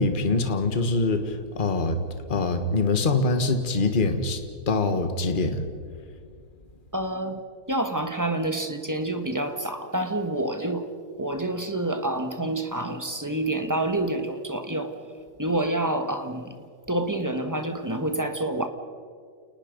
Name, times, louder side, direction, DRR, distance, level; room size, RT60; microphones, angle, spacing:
voice 1, 0.0-2.0 2.3-4.4 4.7-5.6, left 3 dB, 30° left, 7 dB, 1.6 m, -24 dB
voice 2, 6.9-7.4 7.7-10.9 11.2-15.0 15.4-16.6 16.9-18.7, right 1 dB, 10° right, 7 dB, 1.2 m, -28 dB
30.0 x 19.5 x 5.3 m, 2.1 s
omnidirectional pair, 1.8 m